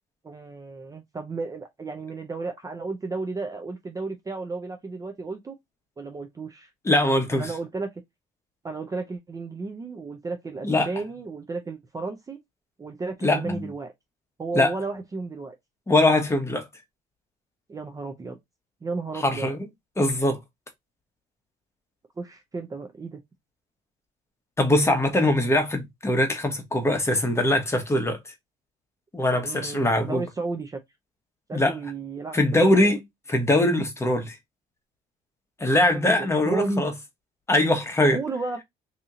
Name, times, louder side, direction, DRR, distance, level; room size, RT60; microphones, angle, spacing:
voice 1, 0.2-5.5 6.0-6.7 7.3-8.0 8.6-12.4 12.8-13.9 14.4-15.5 17.7-18.4 18.8-19.5 22.2-23.2 29.3-30.8 31.5-33.0 35.9-36.8 38.1-38.6, right 3 dB, 20° right, 0.5 m, -33 dB
voice 2, 6.8-7.5 10.6-10.9 13.2-13.6 14.5-14.7 15.9-16.7 19.2-19.7 20.0-20.4 24.6-28.2 29.1-30.2 31.5-31.7 32.3-33.0 33.3-34.4 35.6-36.9 37.5-38.2, left 1 dB, 15° left, 1.0 m, -22 dB
2.8 x 2.7 x 3.6 m
cardioid pair, 110°, 17 cm